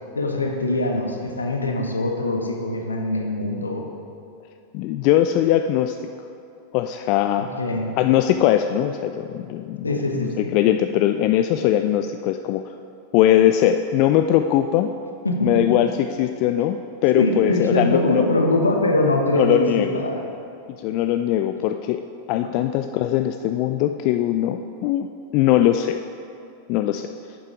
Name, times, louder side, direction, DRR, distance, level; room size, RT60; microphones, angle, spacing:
voice 1, 0.1-3.9 7.4-7.9 9.8-10.5 15.2-15.5 17.1-20.2, left 2 dB, 75° left, 3 dB, 1.0 m, -23 dB
voice 2, 4.7-6.0 6.7-7.5 8.0-12.7 13.1-14.9 15.4-18.3 19.3-20.0 20.7-22.0 22.3-25.1 25.3-26.0 26.7-27.1, left 12 dB, 45° left, 7 dB, 0.3 m, -20 dB
9.2 x 7.3 x 4.8 m, 2.6 s
figure-of-eight pair, 90°, 0 cm